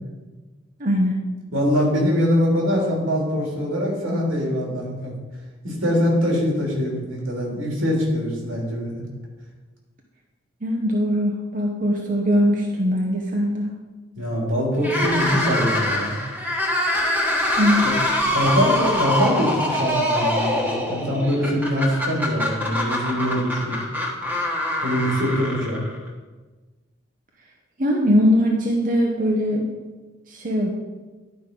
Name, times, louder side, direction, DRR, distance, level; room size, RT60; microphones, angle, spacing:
voice 1, 0.8-1.1 10.6-13.7 17.6-17.8 27.8-29.7 30.3-30.7, equal, 40° right, 0 dB, 0.9 m, -21 dB
voice 2, 1.5-5.1 5.6-9.0 14.2-16.2 17.8-18.0 18.3-23.8 24.8-25.8, equal, 85° right, -1 dB, 3.1 m, -23 dB
sound 1, 14.8-26.1, left 1 dB, 10° right, 1.3 m, -24 dB
11.0 x 5.3 x 5.3 m, 1.3 s
head